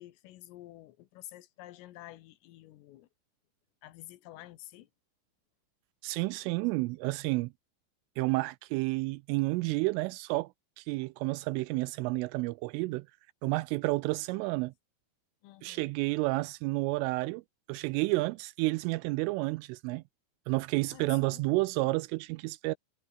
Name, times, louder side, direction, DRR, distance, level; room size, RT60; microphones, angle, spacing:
voice 1, 0.0-3.1 3.8-4.9 15.4-15.9 20.9-21.6, left 15 dB, 85° left, 4.0 m, -50 dB
voice 2, 6.0-7.5 8.2-10.5 10.8-13.1 13.4-14.7 15.6-17.4 17.7-20.0 20.5-22.8, right 22 dB, 85° right, 3.1 m, -30 dB
omnidirectional pair, 5.8 m